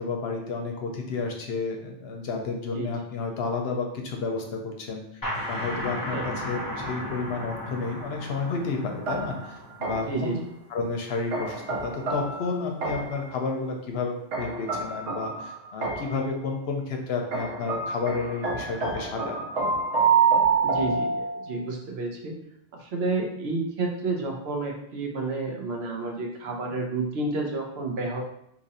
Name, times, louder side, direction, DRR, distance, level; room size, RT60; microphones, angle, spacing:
voice 1, 0.0-5.0 5.5-10.3 10.7-19.4, left 4 dB, 65° left, 2 dB, 0.8 m, -31 dB
sound 1, 5.2-10.6, equal, 20° left, 0.6 m, -35 dB
sound 2, 9.1-10.3 11.3-13.3 14.3-16.3 17.3-21.6, right 5 dB, 85° right, 1.0 m, -27 dB
voice 2, 10.1-10.4 20.6-22.3 22.8-28.2, right 3 dB, 65° right, 1 dB, 0.9 m, -30 dB
2.8 x 2.5 x 4.0 m, 0.73 s
omnidirectional pair, 1.2 m